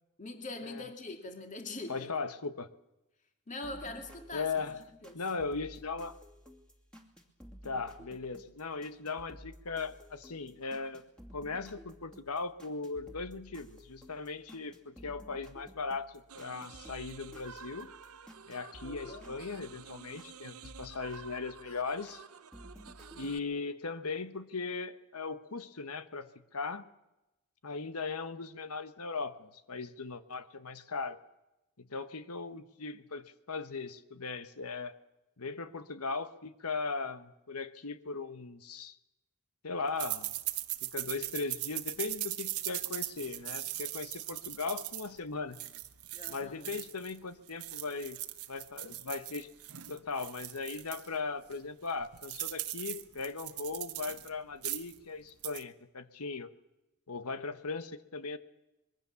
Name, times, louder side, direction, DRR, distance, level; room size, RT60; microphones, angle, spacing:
voice 1, 0.2-2.1 3.5-4.5 5.0-5.2 18.8-19.4 46.1-46.8, left 2 dB, 35° left, 4 dB, 2.6 m, -43 dB
voice 2, 1.9-2.7 4.3-4.8 5.1-6.2 7.6-11.0 11.3-17.9 18.5-22.2 23.1-26.9 27.6-31.2 31.8-34.9 35.4-39.0 39.6-40.4 40.8-45.6 46.3-48.2 48.5-49.5 49.9-56.5 57.1-58.4, left 4 dB, 80° left, 12 dB, 1.3 m, -38 dB
sound 1, 3.6-20.3 20.6-22.2 22.5-23.4, equal, 5° left, 2.6 m, -54 dB
sound 2, 16.3-23.4, right 6 dB, 75° right, 0.8 m, -51 dB
sound 3, 40.0-47.2 47.5-51.1 51.5-51.6 51.9-54.3 54.6-55.0 55.3-55.6, right 16 dB, 90° right, 1.2 m, -39 dB
25.5 x 22.0 x 7.1 m, 0.96 s
head